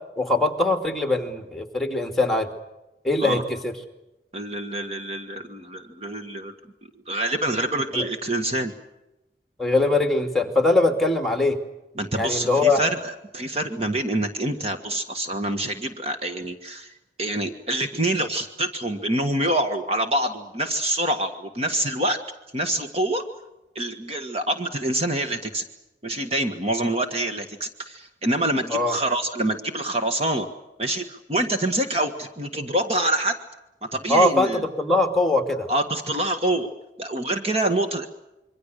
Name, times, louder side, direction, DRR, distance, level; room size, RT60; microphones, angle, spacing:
voice 1, 0.2-2.5 3.0-3.7 7.9-8.0 9.6-11.6 12.2-12.8 28.7-29.0 34.1-35.7, left 2 dB, ahead, 5 dB, 2.6 m, -21 dB
voice 2, 4.3-6.5 7.1-8.7 12.0-16.9 17.2-22.2 22.5-23.2 23.7-25.6 26.0-30.5 30.8-33.4 33.8-34.6 35.7-36.7 37.0-38.1, right 1 dB, 35° right, 6 dB, 1.6 m, -26 dB
27.0 x 24.0 x 6.7 m, 0.95 s
head